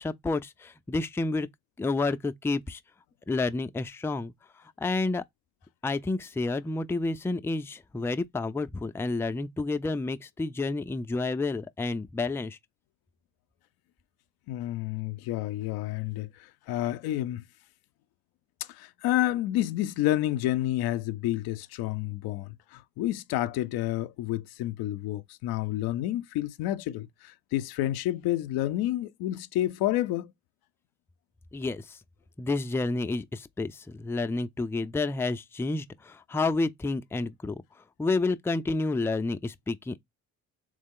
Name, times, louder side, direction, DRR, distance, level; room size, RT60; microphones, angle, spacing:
voice 1, 0.0-1.5 1.8-2.8 3.3-4.3 4.8-5.2 5.8-12.6 31.5-32.0 32.4-37.6 38.0-40.0, left 3 dB, 5° left, 0.4 m, -30 dB
voice 2, 14.5-17.4 18.7-30.3, left 14 dB, 75° left, 0.5 m, -29 dB
3.5 x 3.2 x 3.7 m
supercardioid pair, 60°, 37 cm